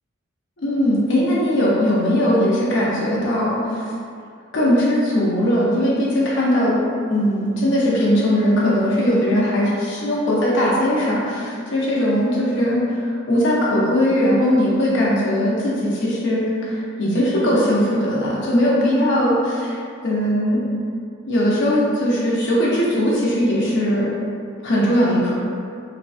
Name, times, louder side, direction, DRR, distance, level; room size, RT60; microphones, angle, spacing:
voice 1, 0.6-3.8 4.5-6.8 7.1-19.8 20.0-20.6 21.3-24.1 24.6-25.3, equal, 60° left, -6 dB, 0.7 m, -19 dB
3.2 x 2.5 x 2.3 m, 2.3 s
head